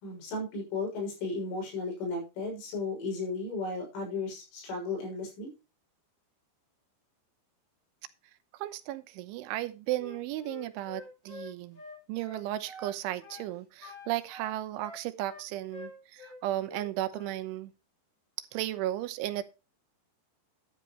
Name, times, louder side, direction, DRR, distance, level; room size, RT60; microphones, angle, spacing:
voice 1, 0.0-5.5, left 3 dB, 80° left, 9.1 m, -35 dB
voice 2, 8.5-11.8 12.1-17.7 18.5-19.4, right 14 dB, 85° right, 3.3 m, -35 dB
Wind instrument woodwind instrument, 10.0-13.0 13.2-13.5 13.8-16.4 16.7-17.4, left 2 dB, 30° left, 5.2 m, -46 dB
12.5 x 11.0 x 3.1 m
omnidirectional pair, 5.5 m